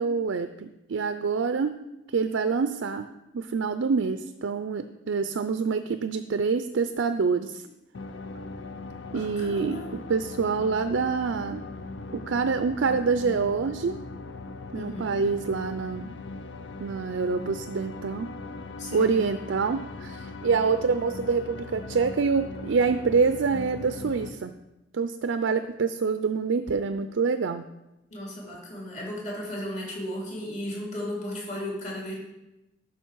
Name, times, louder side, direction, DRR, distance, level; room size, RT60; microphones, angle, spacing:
voice 1, 0.0-1.8 2.1-3.1 3.3-7.7 9.1-11.6 12.1-14.0 14.7-16.1 16.8-18.3 18.9-24.5 24.9-27.7, right 5 dB, 85° right, 10 dB, 0.5 m, -26 dB
sound 1, 7.9-24.3, left 3 dB, 70° left, 0.6 m, -39 dB
voice 2, 9.1-9.9 14.7-15.2 18.8-19.2 28.1-32.2, left 1 dB, 40° left, -3 dB, 2.8 m, -35 dB
12.0 x 5.7 x 4.6 m, 0.96 s
head